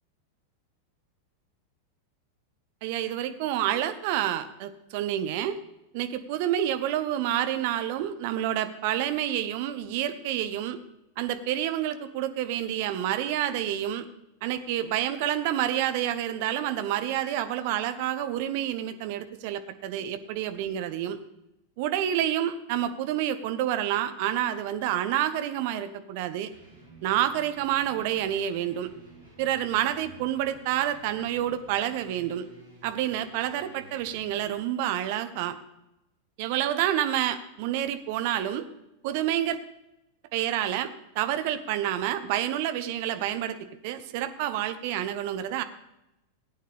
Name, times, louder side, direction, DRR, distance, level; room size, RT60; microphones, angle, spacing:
voice 1, 2.8-5.6 5.9-10.8 11.2-14.0 14.4-21.2 21.8-26.5 27.0-28.9 29.4-32.5 32.8-35.6 36.4-38.7 39.0-39.6 40.3-43.6 43.8-45.6, right 11 dB, 50° right, 10 dB, 0.9 m, -28 dB
sound 1, 26.5-34.4, right 2 dB, 85° right, 5.0 m, -52 dB
16.5 x 9.1 x 3.5 m, 0.89 s
figure-of-eight pair, 90°, 0 cm